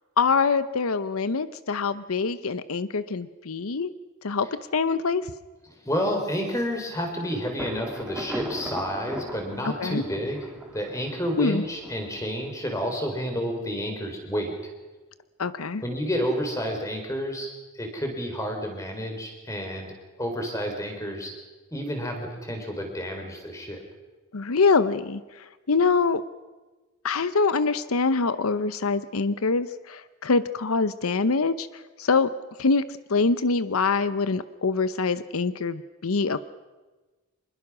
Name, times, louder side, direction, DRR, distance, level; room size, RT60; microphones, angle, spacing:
voice 1, 0.2-3.9 4.2-5.3 9.8-10.0 11.4-11.6 15.4-15.8 24.3-26.2 27.0-32.3 32.6-32.8 33.1-36.4, left 4 dB, 85° left, 14 dB, 0.8 m, -24 dB
voice 2, 5.8-14.5 15.8-17.5 17.7-19.9 20.2-21.3 21.7-23.8, equal, 15° left, 3 dB, 4.0 m, -30 dB
Thunder, 7.6-13.2, equal, 5° right, 2.8 m, -38 dB
25.5 x 21.0 x 6.2 m, 1.2 s
head